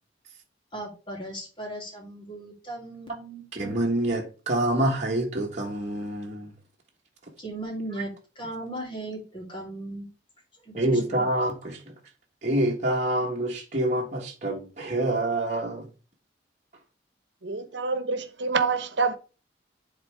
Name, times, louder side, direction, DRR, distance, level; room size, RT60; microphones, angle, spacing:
voice 1, 0.7-3.4 7.4-10.1 10.7-11.2, right 1 dB, 30° left, 3.2 m, -37 dB
voice 2, 3.5-6.5 10.7-11.8 12.4-15.9, right 1 dB, 40° right, 1.4 m, -26 dB
voice 3, 17.4-19.2, right 4 dB, 75° right, 1.1 m, -26 dB
10.5 x 4.1 x 3.5 m
head